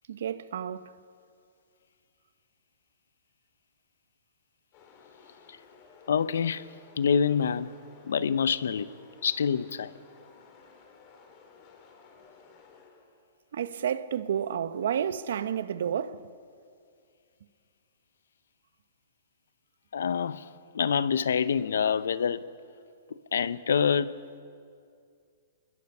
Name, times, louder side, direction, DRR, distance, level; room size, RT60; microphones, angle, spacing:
voice 1, 0.1-0.9 13.5-16.3, right 8 dB, 75° right, 0.9 m, -31 dB
sound 1, 4.7-13.4, left 5 dB, 40° left, 4.1 m, -55 dB
voice 2, 6.1-7.7 8.1-8.9 9.2-9.9 19.9-20.5 20.7-22.4 23.3-24.2, left 7 dB, 80° left, 0.8 m, -26 dB
26.0 x 21.0 x 5.5 m
hypercardioid pair, 140°, 0 cm